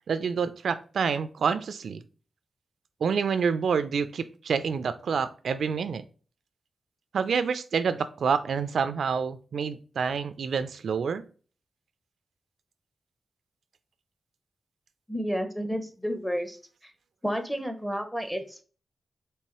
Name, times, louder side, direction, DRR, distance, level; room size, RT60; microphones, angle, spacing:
voice 1, 0.1-2.0 3.0-6.0 7.1-11.2, right 6 dB, 80° right, 12 dB, 0.3 m, -28 dB
voice 2, 15.1-16.6 16.8-16.9 17.2-18.6, equal, 5° left, 6 dB, 0.6 m, -31 dB
4.6 x 3.2 x 3.0 m, 0.39 s
wide cardioid pair, 150°, 0 cm